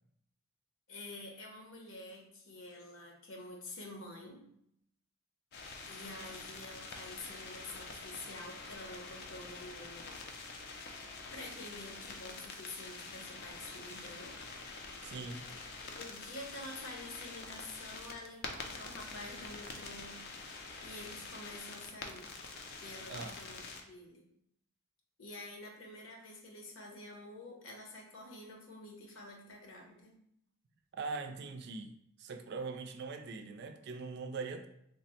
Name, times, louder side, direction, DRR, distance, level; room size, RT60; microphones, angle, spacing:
voice 1, 0.9-4.4 5.9-10.2 11.3-14.4 15.5-15.6 15.9-22.2 22.8-24.3 25.2-30.2, left 2 dB, 75° left, 0 dB, 0.8 m, -48 dB
sound 1, 5.5-23.8, left 3 dB, 50° left, 0.5 m, -46 dB
voice 2, 15.0-15.5 23.1-23.4 30.9-34.7, right 4 dB, 55° right, 6 dB, 0.3 m, -42 dB
3.2 x 2.1 x 4.1 m, 0.74 s
head